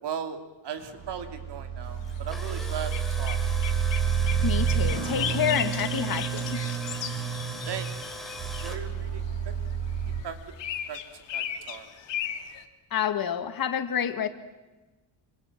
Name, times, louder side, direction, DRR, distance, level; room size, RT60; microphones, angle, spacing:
voice 1, 0.0-3.4 7.7-7.9 8.6-9.2 10.2-10.4 10.9-11.0 11.3-11.9, right 7 dB, 60° right, 7 dB, 3.0 m, -37 dB
sound 1, 0.8-10.2, right 7 dB, 45° right, 7.9 m, -29 dB
Tools, 2.1-8.8, left 1 dB, ahead, 3.4 m, -40 dB
sound 2, 2.2-8.9 9.7-12.6, left 9 dB, 70° left, 2.5 m, -37 dB
voice 2, 4.4-6.6 12.9-14.3, left 9 dB, 50° left, 9 dB, 1.9 m, -28 dB
27.5 x 26.0 x 7.5 m, 1.2 s
cardioid pair, 155°, 46 cm